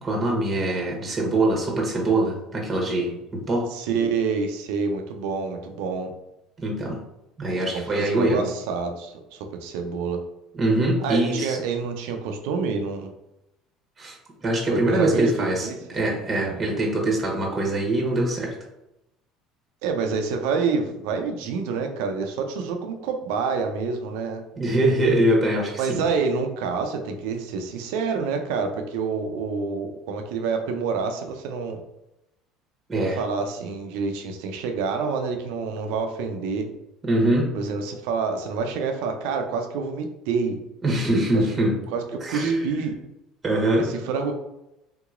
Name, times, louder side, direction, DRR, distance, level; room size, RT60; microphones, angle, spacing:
voice 1, 0.0-3.7 6.6-7.0 7.4-8.5 10.6-11.6 14.0-15.7 15.9-18.5 24.6-26.0 32.9-33.2 37.0-37.5 40.8-41.8 42.2-42.7 43.4-43.9, right 1 dB, 25° right, -1 dB, 1.1 m, -23 dB
voice 2, 3.7-6.1 7.7-10.2 11.0-13.1 14.7-16.2 16.4-16.8 19.8-24.4 25.8-31.8 32.9-36.7 37.5-40.6 41.3-41.5 41.9-42.9 43.8-44.3, right 5 dB, 80° right, 5 dB, 0.5 m, -28 dB
3.6 x 2.9 x 2.5 m, 0.88 s
supercardioid pair, 90°, 0 cm